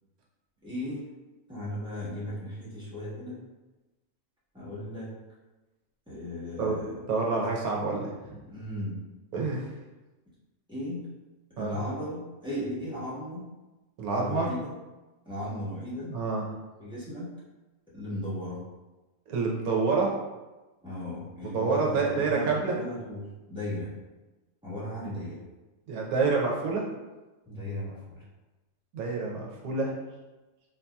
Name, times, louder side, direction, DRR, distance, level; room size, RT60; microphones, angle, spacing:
voice 1, 0.6-1.0 1.5-3.4 4.5-5.1 6.1-7.1 8.5-9.0 10.7-11.0 11.6-13.4 14.2-14.7 15.2-16.1 16.8-17.3 17.9-18.6 20.8-23.2 23.5-24.0 24.6-25.4 27.4-28.2, left 1 dB, 5° right, -10 dB, 1.2 m, -36 dB
voice 2, 7.1-8.4 9.3-9.7 11.6-11.8 14.0-14.5 16.1-16.4 19.3-20.1 21.4-22.7 25.9-26.8 28.9-29.9, right 4 dB, 80° right, -2 dB, 1.2 m, -28 dB
4.2 x 2.7 x 2.3 m, 1.1 s
omnidirectional pair, 1.5 m